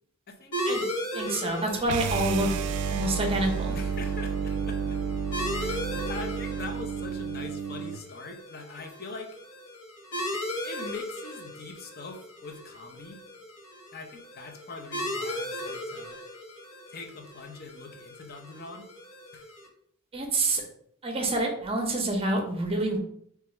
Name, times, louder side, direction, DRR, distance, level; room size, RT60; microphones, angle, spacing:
sound 1, 0.5-19.7, equal, 70° left, 0.9 m, -37 dB
voice 1, 1.1-2.5 2.9-3.7 20.1-20.6 21.0-23.0, right 1 dB, 25° right, 2 dB, 0.6 m, -27 dB
sound 2, 1.8-8.0, right 6 dB, 90° right, 0.3 m, -31 dB
voice 2, 3.7-5.0 5.5-5.8 6.1-9.3 10.3-13.2 13.9-16.2 16.9-18.9 19.3-19.5, left 3 dB, 45° left, 4 dB, 0.6 m, -42 dB
3.0 x 2.3 x 4.2 m, 0.66 s
head